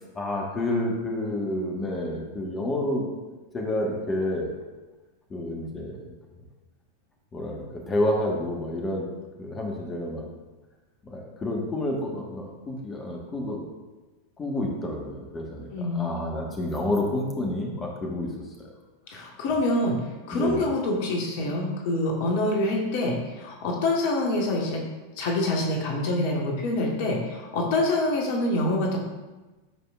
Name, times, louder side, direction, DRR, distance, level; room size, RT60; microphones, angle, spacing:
voice 1, 0.1-3.0 3.5-4.5 5.3-6.1 7.3-9.1 9.4-10.3 11.0-13.7 14.4-18.3 20.3-20.7, left 1 dB, 20° left, 0 dB, 1.4 m, -29 dB
voice 2, 15.7-16.2 19.1-20.0 20.3-24.8 25.2-29.0, left 2 dB, 50° left, 0 dB, 1.3 m, -26 dB
13.5 x 5.0 x 2.4 m, 1.2 s
figure-of-eight pair, 90°, 0 cm